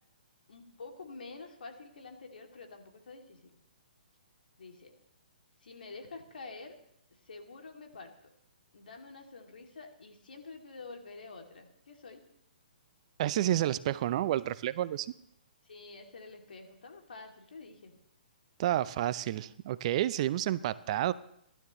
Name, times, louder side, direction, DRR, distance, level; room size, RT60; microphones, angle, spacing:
voice 1, 0.5-3.6 4.6-5.0 5.6-6.8 7.1-8.3 8.7-12.2 15.6-17.9, left 3 dB, 70° left, 3 dB, 2.7 m, -48 dB
voice 2, 13.2-15.1 18.6-21.1, right 13 dB, 40° right, 16 dB, 0.6 m, -30 dB
28.5 x 12.0 x 3.2 m, 0.74 s
figure-of-eight pair, 130°, 5 cm